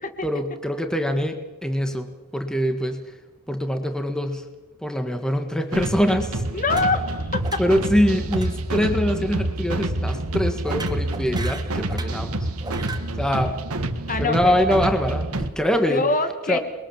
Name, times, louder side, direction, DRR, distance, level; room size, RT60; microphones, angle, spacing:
voice 1, 0.2-3.1 3.5-4.5 4.8-6.4 7.6-12.5 13.2-13.6 14.1-16.1 16.5-16.6, equal, 5° left, 6 dB, 1.7 m, -24 dB
sound 1, 5.7-15.5, right 1 dB, 75° right, 1.8 m, -27 dB
voice 2, 6.5-7.4 14.1-14.5 15.9-16.6, left 3 dB, 40° left, 8 dB, 2.1 m, -24 dB
sound 2, 6.7-7.2 7.4-7.9 8.3-8.5 8.8-9.1 10.6-12.2 12.6-13.1, right 3 dB, 20° right, 2.1 m, -37 dB
28.5 x 22.0 x 7.3 m, 1.2 s
head